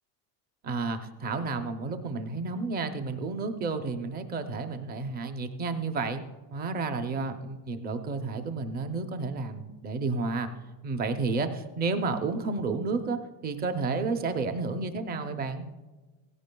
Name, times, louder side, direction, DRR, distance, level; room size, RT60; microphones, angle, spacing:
voice 1, 0.6-6.2 6.5-10.5 10.8-15.7, right 3 dB, 20° right, 8 dB, 0.5 m, -31 dB
17.0 x 16.0 x 2.2 m, 1.3 s
cardioid pair, 170°, 42 cm